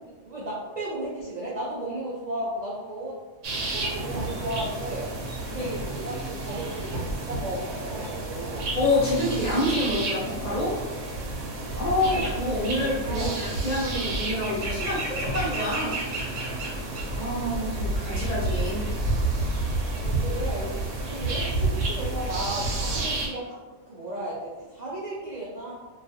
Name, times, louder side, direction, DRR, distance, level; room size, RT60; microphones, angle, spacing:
voice 1, 0.0-3.2 3.7-5.1 5.5-8.7 12.0-12.2 13.0-13.3 16.9-17.1 19.9-20.7 21.1-23.6 23.9-25.7, right 1 dB, 65° right, -6 dB, 0.4 m, -34 dB
sound 1, 3.4-23.3, right 2 dB, 90° right, 0.9 m, -30 dB
voice 2, 8.7-10.7 11.8-15.9 17.2-18.9, left 1 dB, 45° left, -7 dB, 0.7 m, -27 dB
2.4 x 2.3 x 2.5 m, 1.2 s
omnidirectional pair, 1.2 m